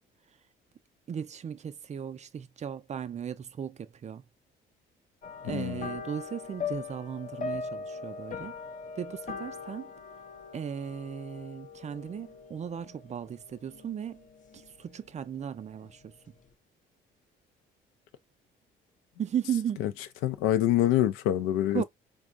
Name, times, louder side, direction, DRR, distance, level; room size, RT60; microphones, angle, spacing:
voice 1, 1.1-4.2 5.4-8.6 9.0-9.9 10.5-14.3 14.5-16.3 19.2-19.8 21.7-21.8, right 8 dB, 35° right, 0.4 m, -36 dB
sound 1, 5.2-14.8 15.1-15.4 15.8-15.9, left 5 dB, 40° left, 0.6 m, -41 dB
voice 2, 5.4-5.9 19.8-19.9 20.2-21.8, left 12 dB, 85° left, 0.5 m, -25 dB
3.5 x 2.0 x 2.5 m
supercardioid pair, 65°, 21 cm